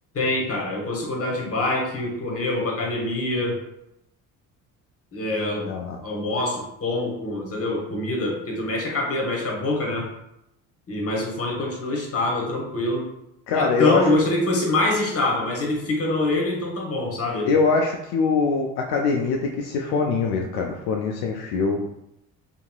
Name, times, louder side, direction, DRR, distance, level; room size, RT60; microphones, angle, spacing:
voice 1, 0.1-3.6 5.1-5.7 6.0-10.1 10.9-13.0 13.5-17.5, left 2 dB, 35° left, -1 dB, 1.0 m, -25 dB
voice 2, 5.7-6.0 13.5-14.1 14.5-14.8 17.5-21.8, left 4 dB, 75° left, 1 dB, 0.5 m, -23 dB
2.9 x 2.8 x 2.3 m, 0.83 s
supercardioid pair, 65°, 41 cm